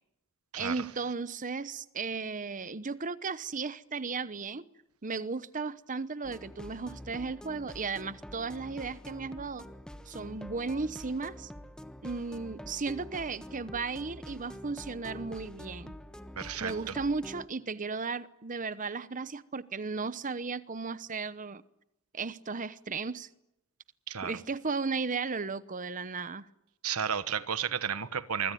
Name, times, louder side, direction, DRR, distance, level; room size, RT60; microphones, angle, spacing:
voice 1, 0.5-4.6 5.0-9.7 10.1-11.5 12.0-15.9 16.6-21.6 22.1-23.3 24.2-26.5, right 4 dB, 35° right, 0.9 m, -35 dB
sound 1, 6.2-17.5, equal, 5° left, 1.3 m, -46 dB
voice 2, 16.4-16.9 24.1-24.3 26.8-28.5, right 7 dB, 80° right, 1.2 m, -32 dB
25.0 x 24.0 x 9.3 m
head